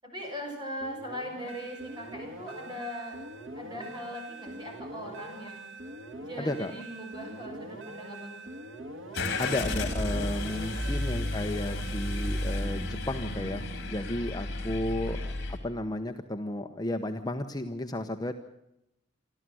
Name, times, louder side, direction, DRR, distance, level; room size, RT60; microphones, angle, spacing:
voice 1, 0.0-3.2 3.6-5.7 6.2-8.5 10.6-10.9 15.1-15.4, equal, 25° right, 1 dB, 7.2 m, -40 dB
sound 1, 0.8-12.9, right 1 dB, 85° right, 2.8 m, -44 dB
voice 2, 6.4-6.7 9.4-18.3, left 1 dB, 20° left, 5 dB, 0.9 m, -33 dB
Car / Engine starting, 9.1-15.6, left 1 dB, 60° left, 4.4 m, -32 dB
27.0 x 13.0 x 7.8 m, 0.86 s
head